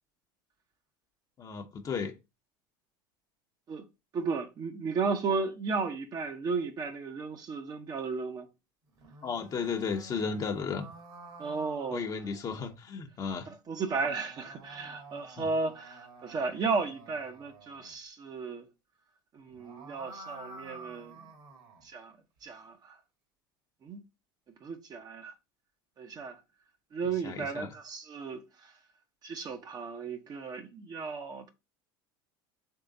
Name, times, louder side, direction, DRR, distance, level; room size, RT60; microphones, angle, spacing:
voice 1, 1.4-2.1 9.2-10.9 11.9-13.5 15.4-15.5 27.2-27.8, left 5 dB, 30° left, 0.8 m, -34 dB
voice 2, 4.1-8.5 11.4-12.0 13.5-18.7 19.3-21.2 21.8-22.1 22.4-22.8 23.8-24.0 24.6-25.3 26.0-26.4 26.9-28.4 29.2-31.5, right 4 dB, 35° right, 0.8 m, -34 dB
sound 1, 8.9-12.8 13.7-18.0 19.4-21.9, right 3 dB, 55° right, 1.7 m, -50 dB
3.7 x 3.3 x 3.9 m
supercardioid pair, 95°, 11 cm